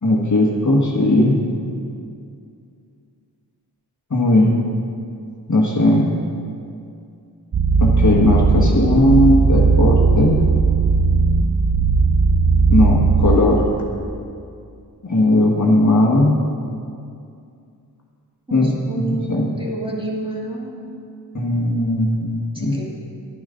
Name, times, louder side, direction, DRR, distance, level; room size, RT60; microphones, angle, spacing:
voice 1, 0.0-1.4 4.1-4.5 5.5-6.1 7.8-10.4 12.7-13.7 15.0-16.4 18.5-18.7 19.0-19.5 21.3-22.8, left 1 dB, 45° left, -3 dB, 1.4 m, -17 dB
sound 1, 7.5-13.4, right 4 dB, 40° right, 0.5 m, -16 dB
voice 2, 18.5-20.7 22.5-22.9, right 2 dB, 10° right, -4 dB, 2.0 m, -29 dB
11.0 x 10.5 x 3.8 m, 2.4 s
wide cardioid pair, 70°, 42 cm